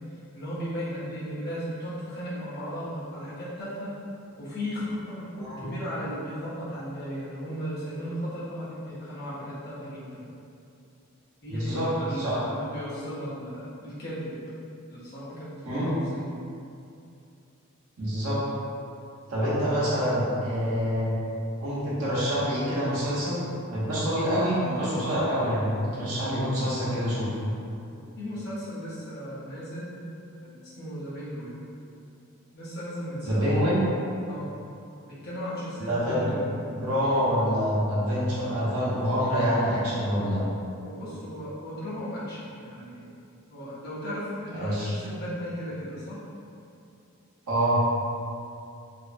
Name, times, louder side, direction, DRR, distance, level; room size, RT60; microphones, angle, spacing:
voice 1, 0.3-3.9 4.4-5.3 5.6-10.2 11.4-14.4 14.9-16.3 27.9-30.0 30.4-31.5 32.5-33.9 34.2-34.5 35.0-36.9 40.8-43.0 43.5-46.2, equal, 45° left, -11 dB, 0.7 m, -36 dB
voice 2, 11.5-12.4 15.6-15.9 18.0-18.4 19.3-21.2 21.6-27.4 33.2-33.9 35.8-36.3 36.7-40.4 44.5-44.9 47.5-47.8, equal, 85° right, -8 dB, 0.8 m, -26 dB
2.6 x 2.1 x 2.4 m, 2.6 s
head